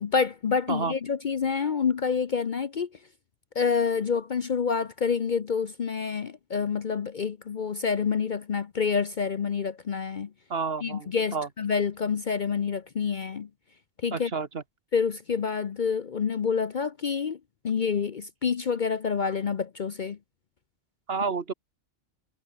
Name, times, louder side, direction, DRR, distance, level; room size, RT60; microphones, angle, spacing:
voice 1, 0.0-2.9 3.5-10.3 10.8-13.5 14.0-14.3 14.9-17.4 17.6-20.2, left 6 dB, 45° left, 0.8 m, -27 dB
voice 2, 10.5-11.5 14.1-14.6 21.1-21.5, right 5 dB, 55° right, 1.6 m, -30 dB
omnidirectional pair, 1.3 m